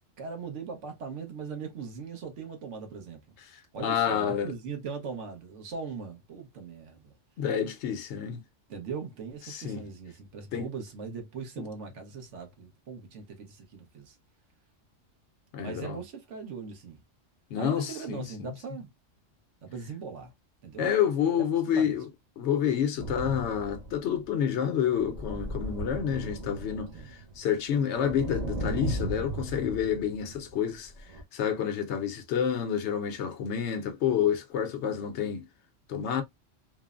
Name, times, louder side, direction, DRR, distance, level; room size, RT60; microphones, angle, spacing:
voice 1, 0.0-3.4 3.7-7.1 8.7-14.2 15.6-17.0 17.6-18.9 19.6-20.3 20.6-20.9 21.7-22.0 26.9-27.1, right 5 dB, 70° right, 1.1 m, -40 dB
voice 2, 3.8-4.5 7.4-8.4 9.5-9.8 10.5-10.7 15.5-16.0 17.5-18.5 20.8-22.1 22.4-26.9 27.4-30.9 31.3-35.5 35.9-36.2, left 8 dB, 70° left, 0.8 m, -28 dB
sound 1, 23.0-24.3 25.0-27.4 27.7-30.6 31.0-31.2, right 1 dB, 40° right, 0.6 m, -36 dB
3.1 x 2.0 x 2.3 m
omnidirectional pair, 1.3 m